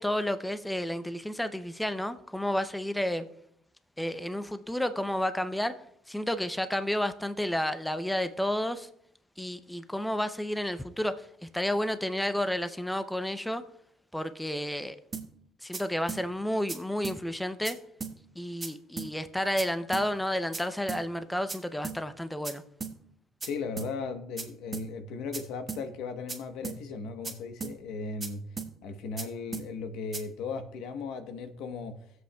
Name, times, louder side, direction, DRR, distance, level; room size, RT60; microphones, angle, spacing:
voice 1, 0.0-3.3 4.0-5.7 6.1-8.9 9.4-13.6 14.1-15.0 15.6-17.8 18.4-22.6, left 1 dB, 5° left, 10 dB, 0.5 m, -31 dB
sound 1, 15.1-15.3 15.7-15.8 16.1-16.2 16.7-16.8 17.0-17.2 17.6-17.7 18.0-18.1 18.6-18.7 19.0-19.1 19.6-19.7 19.9-20.1 20.5-20.6 20.9-21.0 21.5-21.6 21.8-22.0 22.4-22.5 22.8-22.9 23.4-23.5 23.8-23.9 24.4-24.5 24.7-24.9 25.3-25.4 25.7-25.8 26.3-26.4 26.6-26.8 27.2-27.3 27.6-27.7 28.2-28.3 28.6-28.7 29.2-29.3 29.5-29.7 30.1-30.2, right 4 dB, 25° right, 1.4 m, -36 dB
voice 2, 23.4-28.5 28.8-32.0, left 4 dB, 80° left, 7 dB, 1.0 m, -37 dB
17.0 x 7.8 x 2.3 m, 0.71 s
cardioid pair, 125°, 0 cm